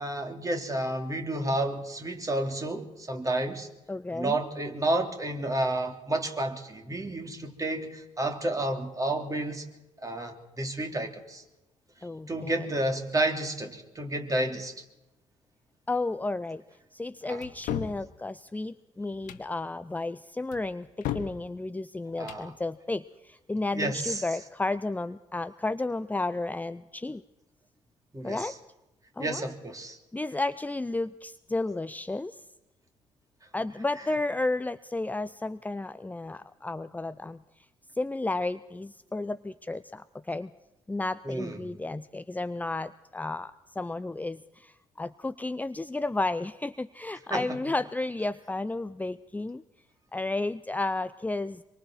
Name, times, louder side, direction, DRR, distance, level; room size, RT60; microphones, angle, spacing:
voice 1, 0.0-3.7 4.1-9.6 10.0-11.4 12.3-14.8 17.2-17.4 22.2-22.6 23.7-24.5 28.1-28.6 29.2-30.0 33.7-34.2 41.2-41.7 47.3-47.7, right 1 dB, 25° right, 4 dB, 3.1 m, -31 dB
voice 2, 3.9-4.4 12.0-12.7 15.9-16.6 16.9-27.2 28.2-28.5 29.2-29.5 30.1-32.4 33.5-37.4 37.9-40.5 40.9-49.6 50.1-51.6, left 2 dB, 10° left, 12 dB, 0.6 m, -32 dB
sound 1, 17.4-18.0 19.1-19.5 20.5-21.4 22.1-22.5, left 12 dB, 70° left, 1.4 m, -35 dB
25.5 x 23.5 x 4.5 m, 0.96 s
hypercardioid pair, 50°, 15 cm